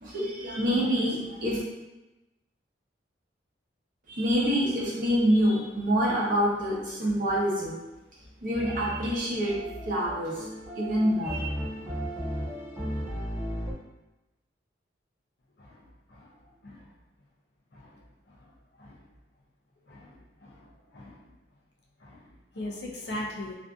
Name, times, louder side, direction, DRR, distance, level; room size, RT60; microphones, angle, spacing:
voice 1, 0.0-1.6 4.1-7.8 8.4-9.5 9.9-10.4 10.8-11.6, equal, 50° right, -6 dB, 0.7 m, -26 dB
sound 1, 8.5-13.7, equal, 15° right, 0.4 m, -35 dB
voice 2, 19.9-20.7 20.9-21.2 22.0-22.2 22.5-23.6, left 1 dB, 65° left, -2 dB, 0.5 m, -39 dB
2.5 x 2.4 x 2.3 m, 1.0 s
head